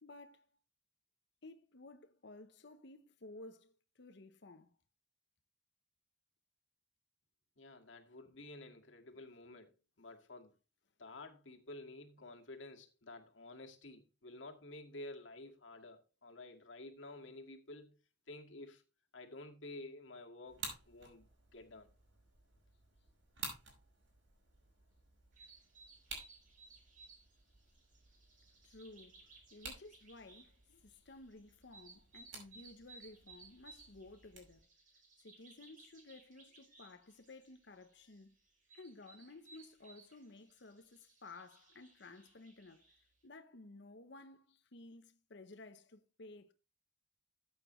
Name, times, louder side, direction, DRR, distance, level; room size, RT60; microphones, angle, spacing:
voice 1, 0.0-0.5 1.4-4.7 28.6-34.7 35.2-38.4 38.7-46.5, left 2 dB, 65° left, 0.9 m, -55 dB
voice 2, 7.6-9.7 10.0-10.5 11.0-18.0 18.3-18.8 19.1-21.2 21.5-21.9, left 2 dB, 90° left, 2.0 m, -51 dB
sound 1, 20.4-34.6, right 4 dB, 85° right, 5.6 m, -53 dB
sound 2, 25.3-43.1, right 4 dB, 45° right, 4.8 m, -62 dB
14.0 x 8.4 x 3.2 m
head